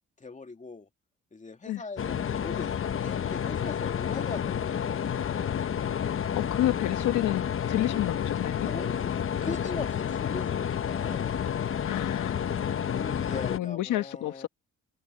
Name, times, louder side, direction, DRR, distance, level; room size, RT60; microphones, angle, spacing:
voice 1, 0.2-0.9 1.3-5.5 8.6-9.1 9.4-11.4 12.9-14.5, left 3 dB, 25° left, 2.8 m, -40 dB
sound 1, 2.0-13.6, left 8 dB, 45° left, 1.0 m, -30 dB
voice 2, 5.1-5.5 6.3-8.7 11.8-12.5 13.5-14.5, left 14 dB, 90° left, 1.9 m, -30 dB
cardioid pair, 90°, 30 cm